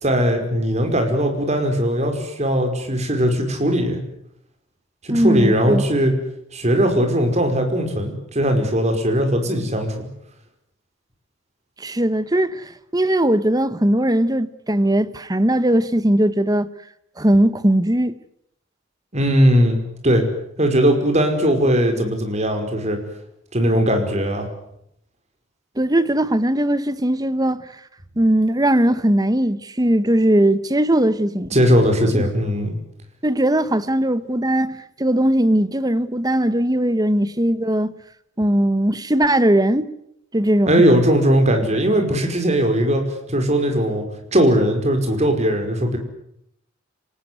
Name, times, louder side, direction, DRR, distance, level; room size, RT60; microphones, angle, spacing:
voice 1, 0.0-4.0 5.0-6.1 6.5-10.1 19.1-19.8 20.0-20.2 20.6-23.0 23.5-24.5 31.5-32.7 40.7-44.0 44.3-46.0, equal, 35° right, 5.2 m, -19 dB
voice 2, 5.1-5.8 11.8-12.6 12.9-16.7 17.2-18.2 25.8-27.6 28.2-31.5 32.1-32.2 33.2-37.9 38.4-39.9 40.3-40.8, right 1 dB, 20° right, 1.1 m, -19 dB
27.0 x 19.0 x 9.6 m
head